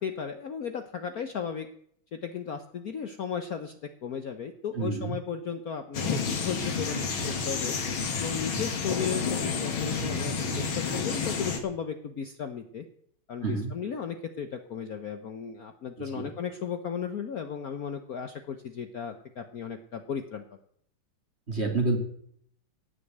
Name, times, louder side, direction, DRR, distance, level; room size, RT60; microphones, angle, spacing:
voice 1, 0.0-1.7 2.1-3.7 4.0-7.8 8.2-12.8 13.3-20.4, left 7 dB, 55° left, 7 dB, 1.2 m, -35 dB
voice 2, 4.7-5.1 13.4-13.7 16.1-16.3 21.5-22.0, right 3 dB, 30° right, 3 dB, 2.7 m, -28 dB
sound 1, 5.9-11.6, left 5 dB, 70° left, 2.7 m, -30 dB
17.0 x 6.6 x 9.2 m, 0.65 s
omnidirectional pair, 2.3 m